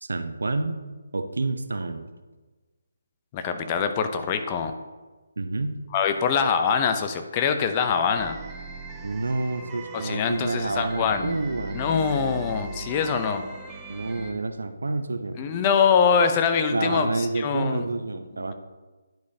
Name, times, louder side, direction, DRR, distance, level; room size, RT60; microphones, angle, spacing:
voice 1, 0.0-0.8 1.1-2.1 5.4-5.8 9.0-11.8 13.9-15.4 16.7-18.5, right 2 dB, 75° right, 9 dB, 0.6 m, -28 dB
voice 2, 3.3-4.7 5.9-8.4 10.0-11.4 11.7-13.5 15.4-17.1 17.4-17.8, left 6 dB, 25° left, 7 dB, 0.6 m, -23 dB
sound 1, 8.2-14.3, right 3 dB, 15° right, 0.9 m, -39 dB
10.5 x 5.0 x 2.8 m, 1.3 s
figure-of-eight pair, 150°, 0 cm